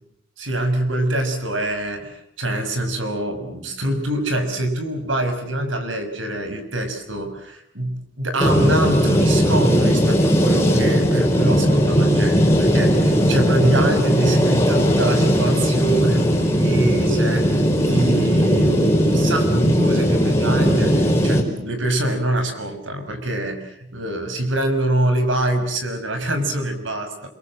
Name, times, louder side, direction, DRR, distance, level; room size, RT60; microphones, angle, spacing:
voice 1, 0.4-27.3, right 1 dB, 80° right, 7 dB, 6.1 m, -24 dB
sound 1, 8.4-21.4, equal, 15° left, 4.9 m, -18 dB
29.0 x 22.5 x 7.6 m, 0.76 s
head